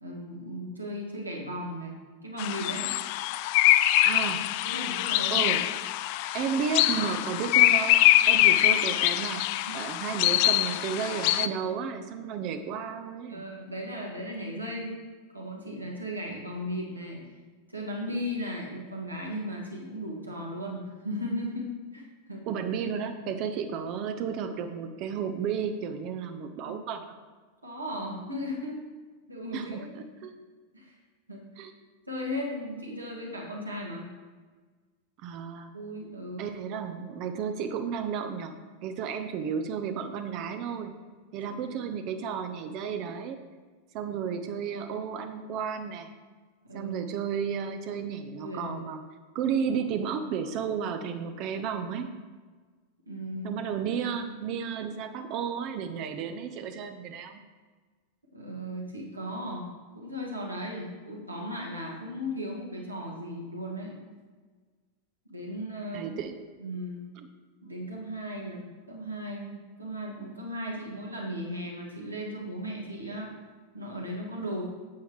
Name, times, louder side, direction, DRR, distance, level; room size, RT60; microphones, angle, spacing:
voice 1, 0.0-2.9 4.6-5.6 9.7-9.8 13.3-15.0 15.3-17.2 17.7-22.5 26.7-26.8 27.6-28.8 29.3-29.9 30.7-30.9 31.3-31.7 32.1-34.0 35.7-36.4 46.6-47.1 48.4-48.8 53.1-53.6 58.3-59.7 59.9-64.0 65.3-66.1 66.6-67.0 67.6-73.3 73.7-74.6, equal, 85° right, -2 dB, 1.9 m, -36 dB
sound 1, 2.4-11.5, left 15 dB, 45° left, 0.3 m, -24 dB
voice 2, 4.0-4.5 5.3-5.6 6.3-8.0 8.3-13.4 22.5-27.1 29.5-30.3 31.6-31.7 35.2-35.7 36.4-38.5 38.8-40.9 41.3-43.4 43.9-46.1 46.7-49.0 49.3-52.1 53.4-57.4 65.9-66.4 67.2-67.3, right 7 dB, 40° right, 8 dB, 0.6 m, -33 dB
9.3 x 7.8 x 3.2 m, 1.4 s
figure-of-eight pair, 90°, 0 cm